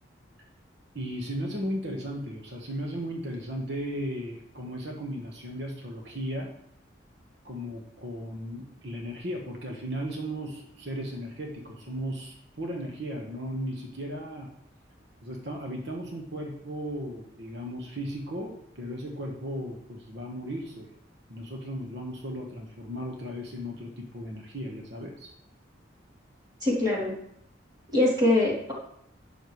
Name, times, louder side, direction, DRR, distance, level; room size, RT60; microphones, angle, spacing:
voice 1, 0.9-6.5 7.4-14.5 15.2-20.9 21.3-25.3, equal, 65° right, 0 dB, 1.4 m, -36 dB
voice 2, 26.6-27.1 27.9-28.7, left 1 dB, 25° right, -5 dB, 3.1 m, -23 dB
12.0 x 8.7 x 3.2 m, 0.74 s
head